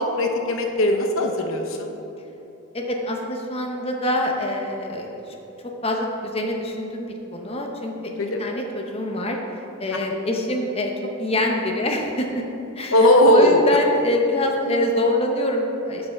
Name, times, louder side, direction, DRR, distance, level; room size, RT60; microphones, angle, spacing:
voice 1, 0.0-2.0 8.2-8.6 12.9-13.6, left 1 dB, 70° left, 3 dB, 0.8 m, -18 dB
voice 2, 2.7-5.3 5.8-7.9 8.4-9.4 9.8-10.9 11.2-12.3 12.8-12.9 13.3-16.1, left 1 dB, 30° left, 1 dB, 0.8 m, -24 dB
6.9 x 5.4 x 5.9 m, 2.9 s
head